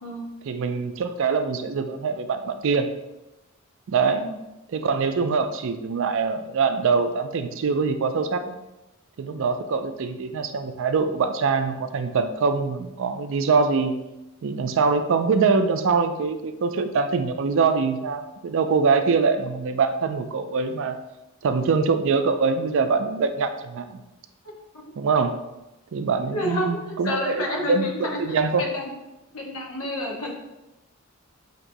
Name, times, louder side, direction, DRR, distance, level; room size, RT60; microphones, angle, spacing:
voice 1, 0.5-2.9 3.9-4.2 4.7-8.6 9.2-13.9 14.4-21.0 21.4-24.0 25.0-25.3 25.9-28.6, right 4 dB, 65° right, 8 dB, 0.4 m, -23 dB
voice 2, 26.3-28.8 29.3-30.3, left 1 dB, 85° left, -1 dB, 1.0 m, -30 dB
5.8 x 2.9 x 2.6 m, 0.97 s
head